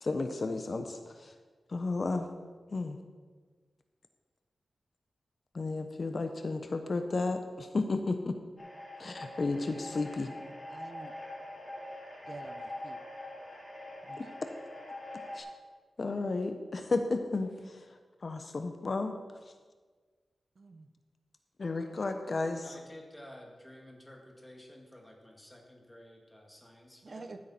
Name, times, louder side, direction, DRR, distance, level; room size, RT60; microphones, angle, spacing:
voice 1, 0.0-1.3 1.7-2.3 2.7-3.0 5.5-8.4 9.0-10.3 14.2-14.3 15.3-15.5 16.0-19.2 21.6-22.8, left 3 dB, 45° left, 7 dB, 0.7 m, -33 dB
sound 1, 8.6-15.4, left 1 dB, 25° left, 3.8 m, -44 dB
voice 2, 10.7-11.2 12.3-13.0 14.0-14.2 20.6-20.9 27.0-27.4, right 3 dB, 50° right, 8 dB, 0.6 m, -47 dB
voice 3, 22.6-27.3, left 1 dB, 10° left, 0 dB, 2.0 m, -52 dB
14.5 x 8.5 x 4.3 m, 1.5 s
wide cardioid pair, 105°, 0 cm